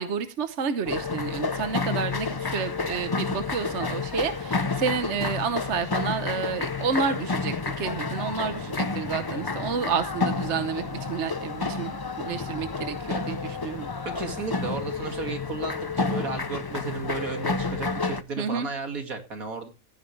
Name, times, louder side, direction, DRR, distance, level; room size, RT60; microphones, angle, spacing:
voice 1, 0.0-13.9 18.4-18.7, right 6 dB, 55° right, 10 dB, 1.2 m, -30 dB
sound 1, 0.8-18.2, left 4 dB, 40° left, 0.3 m, -30 dB
voice 2, 14.0-19.7, right 3 dB, 70° right, 5 dB, 2.8 m, -34 dB
15.0 x 10.5 x 3.2 m, 0.28 s
omnidirectional pair, 1.5 m